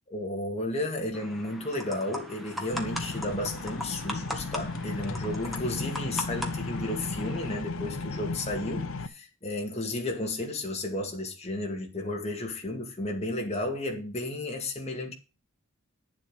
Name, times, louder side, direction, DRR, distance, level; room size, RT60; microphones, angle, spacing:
voice 1, 0.1-15.1, left 1 dB, 30° left, 2.3 m, -33 dB
sound 1, 1.1-7.6, left 1 dB, ahead, 1.6 m, -39 dB
sound 2, 2.7-9.1, left 3 dB, 65° left, 0.8 m, -35 dB
10.5 x 7.5 x 6.4 m
head